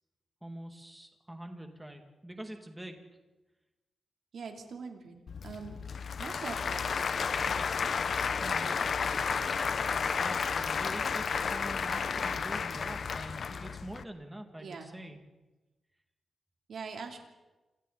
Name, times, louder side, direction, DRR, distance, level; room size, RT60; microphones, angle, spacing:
voice 1, 0.4-3.0 8.4-8.7 10.2-15.2, right 1 dB, 10° right, 4 dB, 2.4 m, -45 dB
voice 2, 4.3-5.8 6.2-7.3 7.6-7.8 8.6-9.2 14.6-15.0 16.7-17.2, right 5 dB, 65° right, 2 dB, 3.4 m, -44 dB
Applause / Crowd, 5.3-14.0, left 5 dB, 50° left, 0.8 m, -32 dB
30.0 x 27.0 x 4.2 m, 1.1 s
wide cardioid pair, 170°, 0 cm